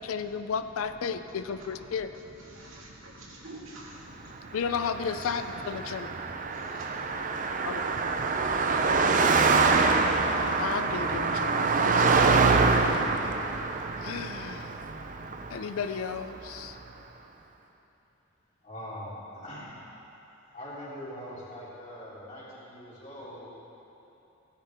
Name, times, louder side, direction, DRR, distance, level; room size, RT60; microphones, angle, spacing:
voice 1, 0.0-2.1 4.5-6.1 7.6-7.8 10.6-12.4 12.9-13.0 14.0-14.7 15.5-16.8, left 6 dB, 85° left, 10 dB, 0.4 m, -33 dB
voice 2, 2.5-4.5 5.2-5.3 6.3-7.7, right 1 dB, 75° right, -4 dB, 2.1 m, -47 dB
Car passing by, 4.7-16.2, right 4 dB, 40° right, 0.5 m, -25 dB
voice 3, 18.6-19.8 20.5-23.5, equal, 35° left, -9 dB, 3.2 m, -42 dB
16.0 x 10.0 x 3.6 m, 2.9 s
head